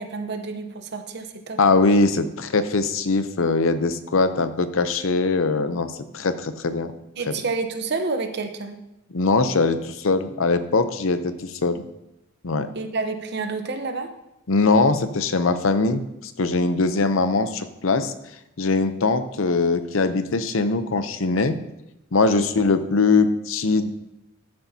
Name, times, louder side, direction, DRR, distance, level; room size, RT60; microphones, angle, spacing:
voice 1, 0.0-1.6 7.2-8.8 12.7-14.1 22.3-22.5, right 4 dB, 55° right, 7 dB, 0.9 m, -29 dB
voice 2, 1.6-6.9 9.1-11.8 12.4-12.7 14.5-16.0 16.4-18.1 18.6-21.6 22.1-23.9, left 3 dB, 75° left, 10 dB, 0.7 m, -21 dB
14.0 x 8.0 x 2.8 m, 0.89 s
head